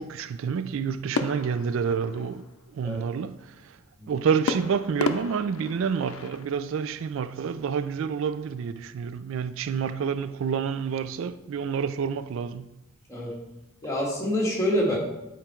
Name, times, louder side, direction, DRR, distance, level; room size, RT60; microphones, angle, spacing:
voice 1, 0.0-2.5 2.7-3.8 4.1-12.7, right 6 dB, 70° right, 0.3 m, -28 dB
sound 1, 1.1-2.7 4.5-6.5, left 4 dB, 85° left, 0.5 m, -33 dB
voice 2, 13.8-15.0, equal, 15° left, 1.8 m, -26 dB
8.9 x 4.6 x 4.4 m
head